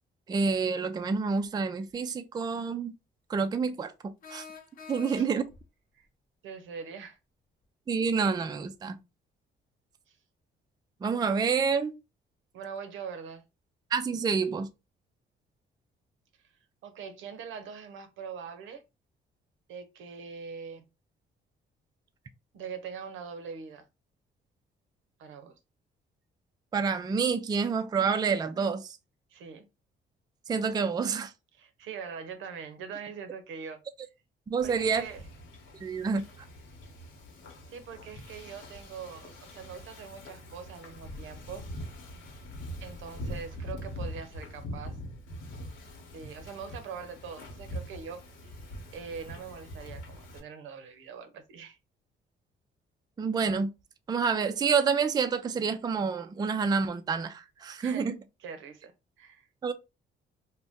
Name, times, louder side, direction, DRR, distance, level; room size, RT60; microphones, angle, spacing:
voice 1, 0.3-2.9 3.3-3.9 4.3-4.5 4.9-5.5 7.9-9.0 11.0-11.9 13.9-14.7 26.7-29.0 30.5-31.3 34.5-35.1 35.8-36.2 53.2-53.7 54.1-58.2 59.6-59.7, right 5 dB, 20° right, 0.3 m, -28 dB
sound 1, 1.9-2.0 4.2-5.6, left 6 dB, 45° left, 0.7 m, -46 dB
voice 2, 6.4-7.2 10.1-10.2 12.5-13.4 16.8-18.8 19.7-20.8 22.5-23.9 25.2-25.5 29.3-29.7 31.6-33.8 34.6-35.3 37.7-41.7 42.8-45.0 46.1-48.6 48.9-51.8 57.8-58.1 58.4-58.9 59.2-59.5, right 6 dB, 80° right, 0.7 m, -42 dB
Wind / Ocean, 34.6-50.4, equal, 75° left, 1.0 m, -43 dB
2.6 x 2.1 x 3.5 m
cardioid pair, 90°, 20 cm